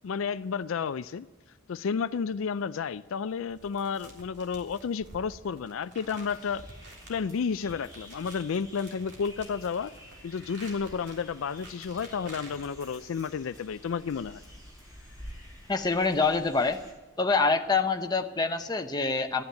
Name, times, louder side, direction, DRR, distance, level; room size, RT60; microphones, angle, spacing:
voice 1, 0.0-1.3 1.7-6.7 7.1-9.9 10.2-14.4, left 6 dB, 75° left, 15 dB, 0.4 m, -31 dB
sound 1, 3.5-13.6, right 2 dB, 55° right, 3.5 m, -51 dB
sound 2, 6.0-16.9, equal, 15° right, 4.4 m, -50 dB
voice 2, 15.7-16.8 17.2-19.4, left 4 dB, 20° left, 6 dB, 0.8 m, -26 dB
14.0 x 9.7 x 9.2 m, 1.2 s
head